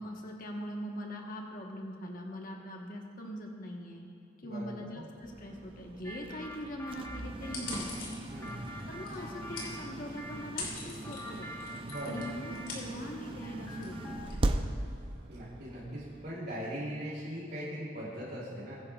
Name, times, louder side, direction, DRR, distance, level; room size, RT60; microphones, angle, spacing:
voice 1, 0.0-4.1 4.4-7.8 8.8-14.6, equal, 45° left, 0 dB, 1.2 m, -42 dB
voice 2, 4.4-5.0 8.3-8.7 11.9-12.3 15.3-18.8, equal, 55° right, -8 dB, 2.9 m, -40 dB
sound 1, 5.2-16.3, right 1 dB, 30° right, 0.5 m, -39 dB
sound 2, 6.0-10.5 11.0-13.1 13.4-14.4, equal, 15° left, 1.0 m, -46 dB
sound 3, 7.4-15.2, left 3 dB, 85° left, 3.0 m, -45 dB
21.0 x 10.5 x 2.4 m, 2.5 s
head